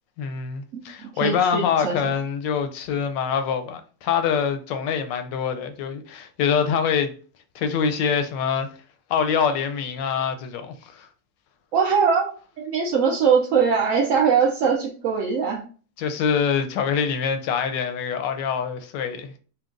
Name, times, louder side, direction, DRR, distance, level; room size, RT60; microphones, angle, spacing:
voice 1, 0.2-7.1 7.5-8.7 9.1-11.1 16.0-19.4, left 7 dB, 85° left, 1.3 m, -25 dB
voice 2, 0.7-2.1 11.7-15.6, right 6 dB, 70° right, 0.8 m, -22 dB
5.7 x 2.3 x 2.5 m
omnidirectional pair, 1.9 m